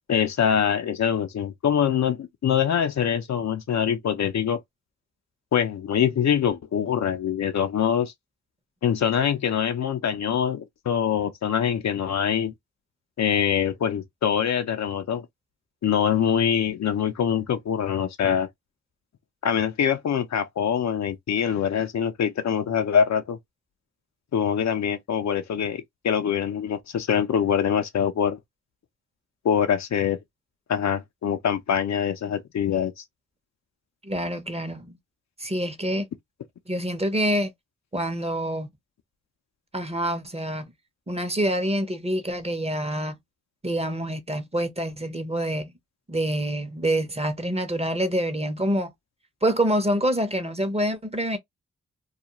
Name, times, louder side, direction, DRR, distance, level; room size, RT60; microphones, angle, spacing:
voice 1, 0.1-4.6 5.5-8.1 8.8-12.5 13.2-15.3 15.8-18.5 19.4-23.4 24.3-28.4 29.4-30.2 30.7-33.0, left 8 dB, 65° left, 0.5 m, -24 dB
voice 2, 34.0-35.0 35.4-36.1 36.7-37.5 37.9-38.7 39.7-40.7 41.1-43.2 43.6-45.7 46.1-48.9 49.4-51.4, right 1 dB, 20° right, 0.8 m, -26 dB
2.4 x 2.1 x 2.9 m
cardioid pair, 40°, 29 cm